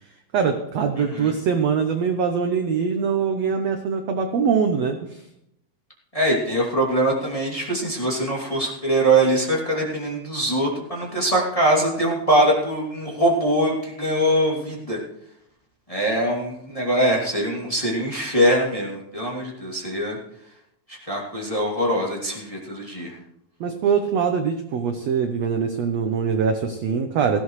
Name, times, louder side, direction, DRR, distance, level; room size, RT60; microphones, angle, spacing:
voice 1, 0.3-5.3 23.6-27.4, right 6 dB, 75° right, 6 dB, 1.5 m, -23 dB
voice 2, 1.0-1.3 6.1-15.0 15.9-20.2 20.9-23.2, right 1 dB, 10° left, -4 dB, 2.2 m, -22 dB
19.0 x 15.5 x 3.2 m, 0.78 s
omnidirectional pair, 4.3 m